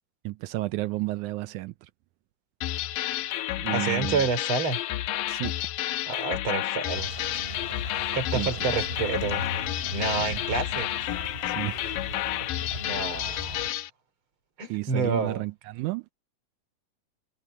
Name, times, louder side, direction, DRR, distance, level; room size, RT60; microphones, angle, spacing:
voice 1, 0.3-1.7 3.6-4.2 5.3-5.5 8.3-8.8 10.2-10.4 11.5-11.9 14.7-16.0, right 19 dB, 85° right, 1.7 m, -32 dB
sound 1, 2.6-13.9, left 14 dB, 80° left, 2.5 m, -30 dB
voice 2, 3.7-4.8 6.1-7.1 8.1-9.4 9.9-10.9 12.7-13.6 14.6-15.5, right 4 dB, 40° right, 3.6 m, -29 dB
sound 2, 6.9-13.7, right 1 dB, 15° right, 7.5 m, -40 dB
sound 3, 8.6-12.0, left 5 dB, 55° left, 2.0 m, -41 dB
omnidirectional pair, 3.9 m